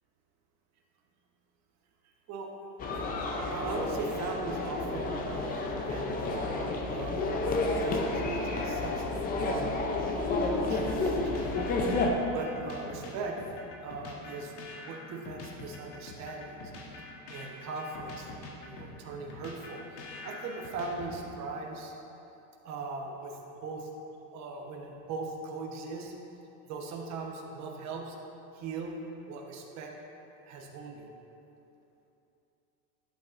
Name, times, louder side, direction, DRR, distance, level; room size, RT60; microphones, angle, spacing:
sound 1, 2.8-12.1, left 2 dB, 20° left, 0.4 m, -31 dB
voice 1, 3.4-7.2 7.7-11.7 12.3-13.4 13.8-14.5 14.8-16.6 16.9-17.0 17.3-21.9 22.6-23.9 24.3-26.1 26.6-28.2 28.5-28.9 29.3-29.9 30.5-31.1, right 3 dB, 35° right, 1 dB, 1.0 m, -39 dB
sound 2, 10.7-21.5, left 2 dB, 55° left, 1.3 m, -46 dB
11.5 x 7.8 x 2.5 m, 2.9 s
supercardioid pair, 145°, 46 cm